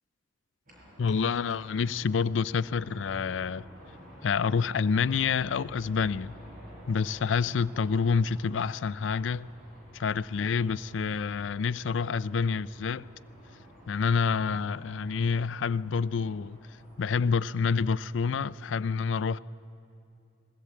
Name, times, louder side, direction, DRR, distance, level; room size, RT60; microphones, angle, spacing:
sound 1, 0.7-18.6, equal, 50° right, 5.9 m, -52 dB
voice 1, 1.0-3.6 4.2-6.3 6.9-9.5 9.9-13.1 13.9-16.6 17.0-19.4, left 5 dB, 80° left, 0.4 m, -28 dB
21.5 x 16.5 x 8.5 m
head